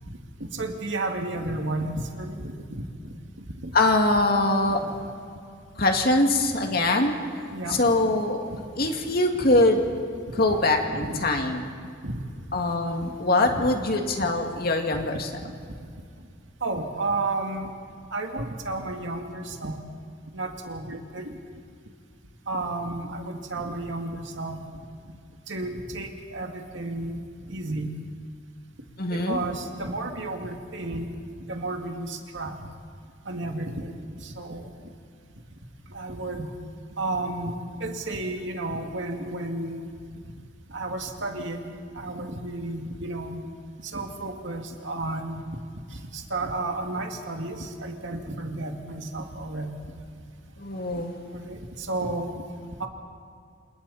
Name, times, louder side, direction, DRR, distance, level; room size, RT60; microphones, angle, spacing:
voice 1, 0.4-3.1 3.6-3.7 4.8-4.9 7.5-7.8 8.1-8.2 8.5-8.9 10.5-10.6 11.0-11.3 12.0-12.2 13.0-13.2 13.5-13.7 14.9-15.0 15.4-15.5 16.6-17.7 18.1-19.8 20.3-21.3 22.5-24.6 25.5-28.0 29.1-31.1 31.5-32.6 33.3-34.7 35.9-36.5 37.0-39.9 40.7-43.4 43.8-45.4 46.1-49.7 51.3-52.4 52.8-52.9, right 2 dB, 75° right, 3 dB, 2.3 m, -32 dB
voice 2, 3.7-4.8 5.8-8.4 8.8-9.8 10.3-11.7 12.5-15.3 29.0-29.4 50.6-51.2, left 2 dB, 50° left, 3 dB, 2.3 m, -23 dB
28.5 x 27.5 x 4.3 m, 2.3 s
head